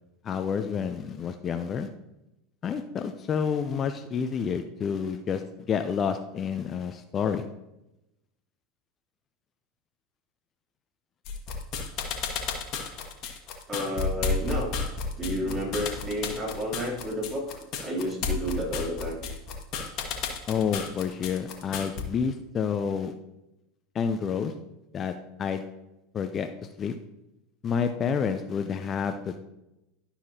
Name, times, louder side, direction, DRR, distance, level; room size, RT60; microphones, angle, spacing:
voice 1, 0.2-1.9 2.6-7.4 20.5-23.1 23.9-24.5 24.9-25.6 26.1-26.5 26.8-27.0 27.6-29.4, left 6 dB, 35° left, 8 dB, 0.5 m, -29 dB
sound 1, 11.3-22.0, left 5 dB, 50° left, 1.3 m, -32 dB
voice 2, 13.7-14.7 15.2-17.4 17.8-19.2, equal, 25° right, -2 dB, 3.0 m, -31 dB
12.0 x 5.7 x 2.8 m, 0.91 s
hypercardioid pair, 80°, 0 cm